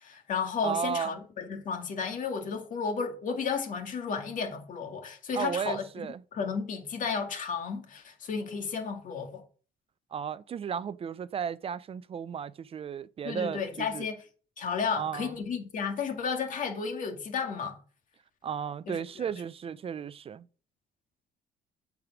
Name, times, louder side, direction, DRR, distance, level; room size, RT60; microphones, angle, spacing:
voice 1, 0.0-5.8 6.3-9.4 13.2-14.2 14.6-17.8 18.9-19.3, left 5 dB, 50° left, 2.1 m, -33 dB
voice 2, 0.6-1.2 5.3-6.2 10.1-14.1 15.0-15.4 18.4-20.5, right 7 dB, 35° right, 0.4 m, -34 dB
8.6 x 4.8 x 6.0 m
cardioid pair, 110°, 17 cm